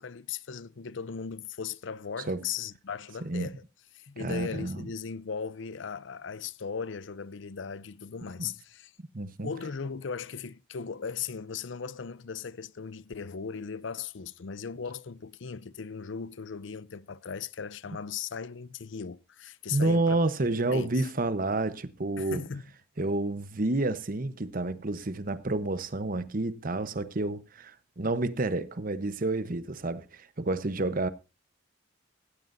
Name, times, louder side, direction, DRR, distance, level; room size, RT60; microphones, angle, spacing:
voice 1, 0.0-3.6 3.9-8.9 9.4-21.0 22.2-22.6, left 6 dB, 70° left, 0.6 m, -38 dB
voice 2, 3.2-3.5 4.2-4.9 8.4-8.5 9.1-9.5 19.7-22.5 23.0-31.1, right 2 dB, 45° right, 1.0 m, -29 dB
16.5 x 15.0 x 2.7 m
head